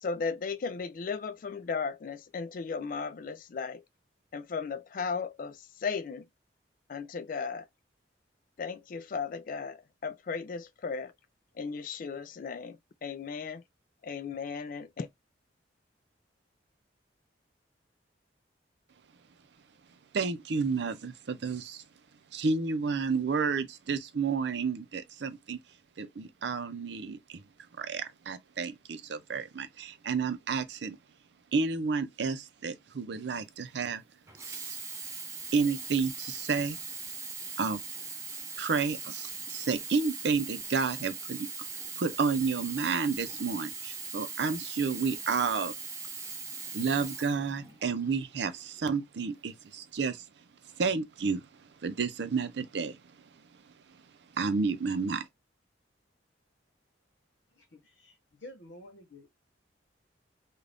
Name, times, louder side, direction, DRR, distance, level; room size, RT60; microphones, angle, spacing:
voice 1, 0.0-3.8 4.3-6.3 6.9-7.7 8.6-11.1 11.5-13.6 14.0-15.1, left 5 dB, 45° left, 0.3 m, -36 dB
voice 2, 20.1-21.8 22.3-25.6 26.0-27.4 27.8-31.0 31.5-34.0 34.5-34.8 35.5-36.8 37.6-37.8 38.6-41.5 41.7-45.7 46.7-53.0 53.3-53.4 54.3-55.3, right 5 dB, 70° right, 0.5 m, -31 dB
Sink (filling or washing), 34.3-48.0 48.8-48.9, right 5 dB, 15° right, 0.7 m, -40 dB
voice 3, 58.4-59.3, left 1 dB, 80° left, 1.0 m, -48 dB
2.5 x 2.3 x 3.3 m
head